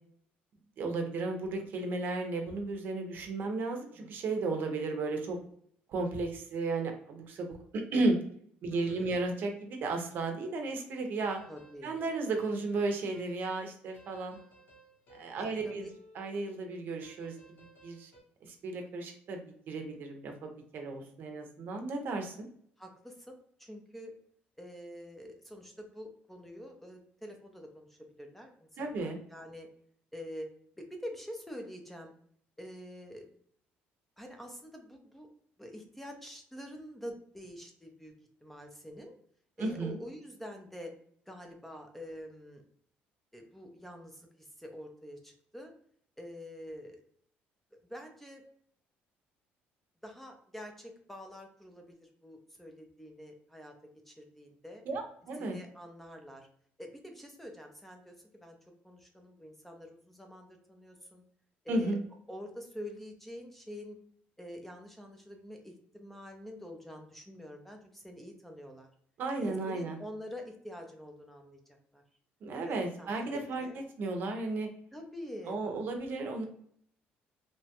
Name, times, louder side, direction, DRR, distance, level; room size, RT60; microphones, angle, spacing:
voice 1, 0.8-5.4 5.9-8.2 8.6-11.4 11.8-14.4 15.1-15.9 16.1-17.4 17.8-18.1 18.4-19.4 19.7-22.5 28.8-29.2 39.6-40.0 54.9-55.6 61.7-62.0 69.2-70.0 72.4-73.7 74.0-74.7 75.5-76.4, right 3 dB, 55° right, 4 dB, 0.6 m, -34 dB
voice 2, 8.7-9.1 11.5-11.9 15.4-15.8 22.8-23.3 23.6-24.1 24.6-29.7 30.1-30.5 30.8-32.1 32.6-33.3 34.2-35.3 35.6-38.1 38.4-39.1 39.6-40.9 41.3-42.6 43.3-45.7 46.2-47.0 47.9-48.4 50.0-53.7 54.1-54.8 55.4-56.5 56.8-58.6 58.8-61.2 61.6-62.0 62.3-64.0 64.4-68.9 69.4-72.0 72.6-73.8 74.9-75.6, equal, 5° left, 3 dB, 0.4 m, -46 dB
sound 1, 11.2-16.7 17.0-18.2, left 1 dB, 50° left, 0.8 m, -58 dB
2.9 x 2.2 x 2.8 m, 0.63 s
cardioid pair, 125°, 4 cm